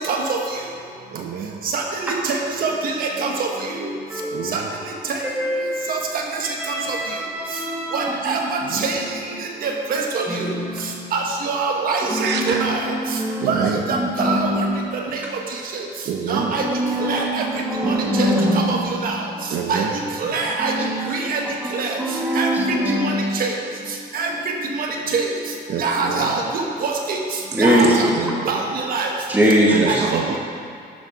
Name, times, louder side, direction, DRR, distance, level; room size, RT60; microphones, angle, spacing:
voice 1, 0.1-0.4 1.7-3.5 3.8-3.9 4.5-4.6 5.1-5.2 5.9-6.5 6.9-7.0 7.9-9.0 9.6-10.5 11.1-12.9 13.5-14.5 15.1-15.2 16.3-16.6 17.1-17.5 17.8-18.8 19.0-19.2 19.7-19.8 20.2-20.7 21.1-21.4 21.7-22.0 22.3-22.8 23.0-23.5 24.1-24.3 24.8-25.3 25.8-27.2 27.6-28.1 28.4-29.1 29.7-30.4, right 4 dB, 60° right, 1 dB, 1.3 m, -24 dB
voice 2, 1.1-1.7 4.3-4.8 8.6-8.8 12.2-12.7 13.4-13.8 16.0-16.6 19.5-20.0 25.7-26.4 27.5-28.7 29.7-30.4, right 6 dB, 85° right, 3 dB, 0.9 m, -27 dB
voice 3, 4.1-4.6 5.4-5.9 6.4-8.4 10.3-11.1 12.1-13.5 13.9-14.6 16.3-19.0 20.6-21.1 21.6-23.2 27.5-28.0 29.3-30.0, equal, 10° right, -4 dB, 1.4 m, -23 dB
12.0 x 6.7 x 4.7 m, 2.4 s
cardioid pair, 180°, 17 cm